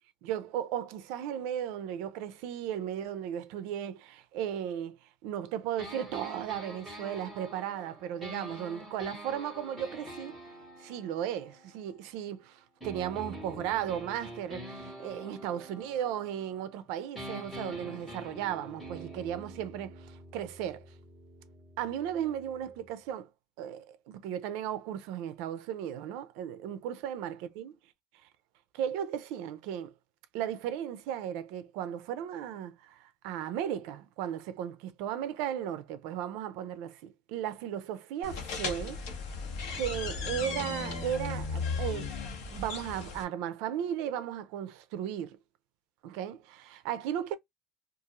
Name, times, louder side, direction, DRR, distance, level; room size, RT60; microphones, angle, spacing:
voice 1, 0.2-5.0 5.2-10.4 10.8-20.9 21.8-23.3 23.6-27.7 28.7-29.9 30.3-39.0 39.7-45.4 46.0-47.4, right 10 dB, 70° right, 0.4 m, -36 dB
sound 1, 5.8-12.3 12.8-16.8 17.2-22.9, equal, 5° left, 1.3 m, -46 dB
sound 2, 38.2-43.2, left 4 dB, 65° left, 1.0 m, -36 dB
2.6 x 2.4 x 2.9 m
cardioid pair, 175°, 0 cm